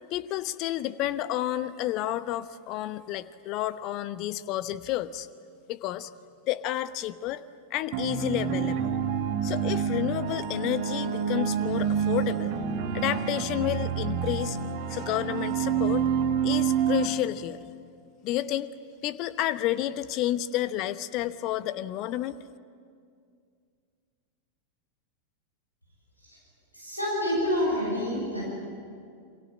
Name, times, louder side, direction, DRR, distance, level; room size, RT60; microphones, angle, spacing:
voice 1, 0.1-5.3 5.7-6.1 6.5-7.4 7.7-8.9 9.4-12.5 12.9-14.6 14.9-16.1 16.4-17.6 18.2-18.7 19.0-22.4, left 13 dB, 40° left, 15 dB, 1.0 m, -30 dB
sound 1, 7.9-17.1, right 7 dB, 45° right, 2.7 m, -28 dB
voice 2, 26.7-28.5, left 1 dB, 90° left, -4 dB, 6.9 m, -27 dB
29.0 x 24.0 x 7.6 m, 2.3 s
figure-of-eight pair, 90°, 0 cm